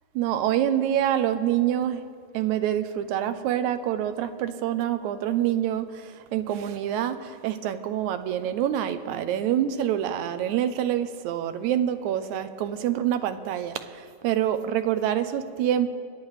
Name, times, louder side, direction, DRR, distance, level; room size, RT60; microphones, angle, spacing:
voice 1, 0.2-2.0 2.3-5.9 6.3-13.8 14.2-15.9, right 11 dB, 80° right, 10 dB, 1.9 m, -26 dB
23.5 x 10.5 x 3.2 m, 2.3 s
omnidirectional pair, 3.4 m